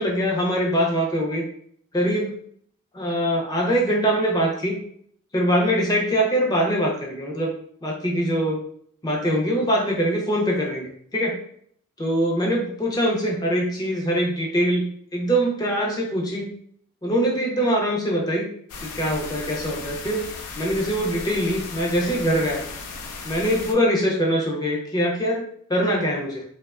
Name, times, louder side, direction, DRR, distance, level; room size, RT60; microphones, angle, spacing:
voice 1, 0.0-1.4 1.9-2.3 2.9-4.8 5.3-8.6 9.0-11.4 12.0-16.5 17.0-18.5 18.8-20.3 20.6-22.6 23.2-26.4, equal, 15° left, -1 dB, 0.4 m, -23 dB
sound 1, 18.7-23.7, left 4 dB, 90° left, 0.4 m, -36 dB
2.8 x 2.1 x 2.3 m, 0.64 s
head